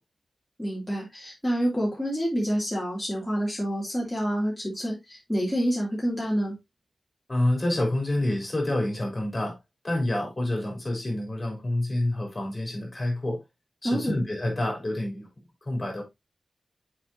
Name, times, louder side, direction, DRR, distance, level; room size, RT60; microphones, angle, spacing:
voice 1, 0.6-6.5 13.8-14.2, equal, 5° left, 2.8 m, -28 dB
voice 2, 7.3-9.6 9.8-13.4 13.8-15.3 15.6-16.0, left 1 dB, 30° left, 3.7 m, -28 dB
7.5 x 5.2 x 2.8 m
wide cardioid pair, 80°, 0 cm